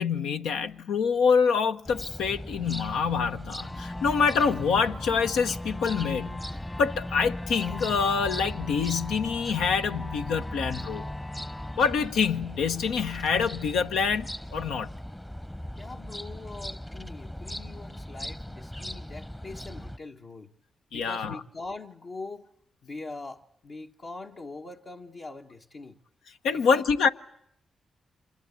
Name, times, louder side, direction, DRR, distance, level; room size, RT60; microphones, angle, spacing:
voice 1, 0.0-6.4 6.8-11.1 11.8-14.9 20.9-21.4 26.4-27.1, left 5 dB, 85° left, 1.0 m, -26 dB
sound 1, 1.8-20.0, equal, 10° left, 0.9 m, -39 dB
sound 2, 3.6-12.9, left 2 dB, 25° left, 1.4 m, -40 dB
voice 2, 15.8-20.5 20.9-22.5 22.8-26.0 26.5-26.8, left 3 dB, 60° left, 1.4 m, -42 dB
27.0 x 20.5 x 8.4 m
supercardioid pair, 50°, 0 cm